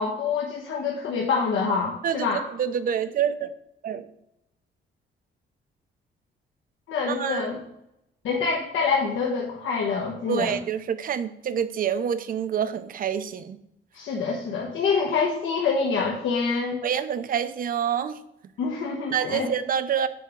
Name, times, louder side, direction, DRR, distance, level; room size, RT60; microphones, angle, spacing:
voice 1, 0.0-2.5 6.9-7.6 8.2-10.6 13.9-16.8 18.6-19.5, left 5 dB, 90° left, -1 dB, 1.2 m, -26 dB
voice 2, 2.0-3.5 3.8-4.0 7.1-7.5 10.3-13.6 16.8-18.2 19.1-20.1, right 8 dB, 45° right, 13 dB, 0.5 m, -27 dB
9.1 x 3.5 x 5.9 m, 0.82 s
cardioid pair, 160°, 19 cm